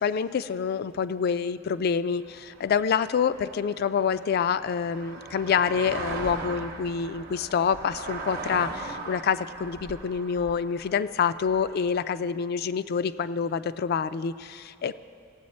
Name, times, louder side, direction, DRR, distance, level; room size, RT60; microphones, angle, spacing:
voice 1, 0.0-15.0, left 6 dB, 50° left, 14 dB, 0.3 m, -27 dB
sound 1, 2.2-12.3, right 3 dB, 50° right, 0.8 m, -39 dB
17.0 x 7.8 x 4.2 m, 2.4 s
head